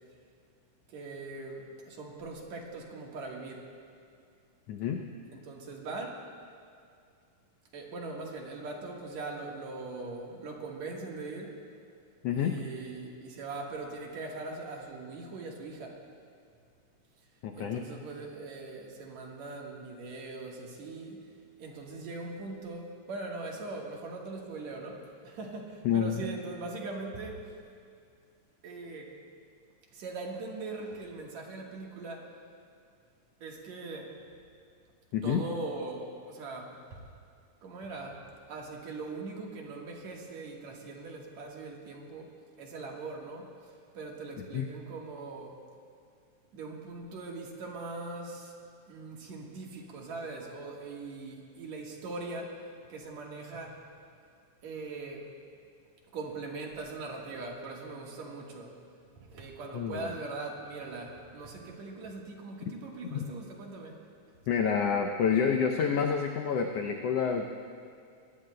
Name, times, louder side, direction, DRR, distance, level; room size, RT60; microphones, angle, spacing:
voice 1, 0.9-3.6 5.3-6.2 7.7-11.6 12.3-16.0 17.6-21.2 21.6-27.6 28.6-29.1 29.9-32.3 33.4-34.1 35.2-37.0 37.6-42.3 42.6-43.5 43.9-45.6 46.5-48.5 48.9-52.6 52.9-53.9 54.6-55.3 56.1-58.7 59.2-64.0, right 3 dB, 65° right, -1 dB, 2.6 m, -41 dB
voice 2, 4.7-5.0 12.2-12.6 17.4-17.8 25.8-26.3 35.1-35.4 44.5-44.7 59.7-60.1 63.1-63.3 64.5-67.4, left 7 dB, 85° left, 3 dB, 1.4 m, -28 dB
22.5 x 18.0 x 2.2 m, 2.3 s
omnidirectional pair, 3.7 m